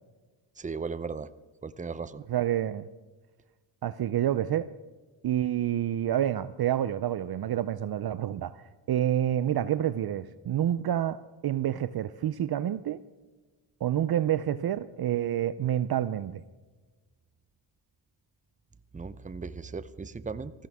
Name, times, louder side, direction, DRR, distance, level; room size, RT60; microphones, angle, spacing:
voice 1, 0.6-1.3 1.6-2.2 18.9-20.5, right 4 dB, 15° right, 0.7 m, -36 dB
voice 2, 2.3-2.9 3.8-4.7 5.2-13.0 13.8-16.4, right 11 dB, 50° right, 0.6 m, -28 dB
19.5 x 15.0 x 3.6 m
cardioid pair, 85°, 49 cm